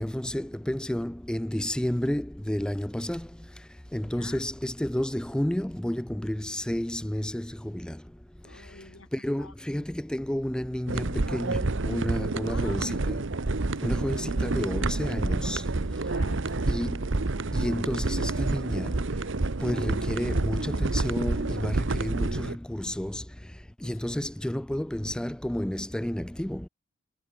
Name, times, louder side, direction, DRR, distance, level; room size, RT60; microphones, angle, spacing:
voice 1, 0.0-3.3 3.9-8.0 9.1-13.2 13.8-15.7 16.7-17.1 17.5-19.0 19.6-23.3 23.8-26.7, equal, 5° left, 0.4 m, -31 dB
voice 2, 4.1-4.5 8.4-9.1 9.4-9.9 12.4-13.1 16.1-17.1 23.8-24.3, left 3 dB, 90° left, 6.0 m, -48 dB
sound 1, 10.9-22.5, right 2 dB, 65° right, 1.0 m, -28 dB
head